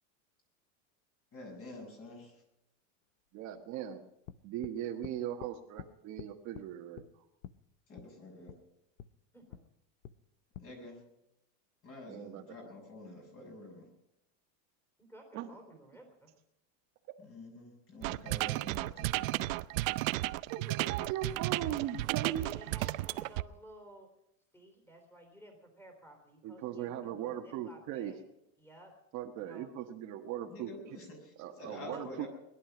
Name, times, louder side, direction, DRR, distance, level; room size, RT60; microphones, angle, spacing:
voice 1, 1.3-2.4 7.9-8.5 10.6-11.0 11.8-13.9 17.2-19.4 30.5-32.3, left 1 dB, 35° left, 2 dB, 6.6 m, -48 dB
voice 2, 3.3-4.0 4.4-7.0 12.1-12.4 15.3-15.5 20.5-22.5 22.8-22.9 26.4-28.1 29.1-31.0 31.4-32.3, right 10 dB, 45° right, 4 dB, 1.4 m, -39 dB
sound 1, 4.3-4.8 5.0-5.5 5.8-5.9 6.2-6.7 7.0-7.1 7.4-7.6 8.0-8.1 8.5-8.6 9.0-9.1 9.5-9.7 10.0-10.2 10.5-10.7, left 11 dB, 75° left, 0.9 m, -47 dB
voice 3, 15.0-16.3 20.7-21.0 22.3-24.1 24.5-28.2 28.6-29.0 29.4-29.7 31.8-32.3, right 1 dB, 5° left, 1 dB, 3.6 m, -55 dB
sound 2, 18.0-23.4, right 19 dB, 75° right, 0.7 m, -33 dB
20.5 x 11.5 x 6.0 m, 0.83 s
supercardioid pair, 145°, 40 cm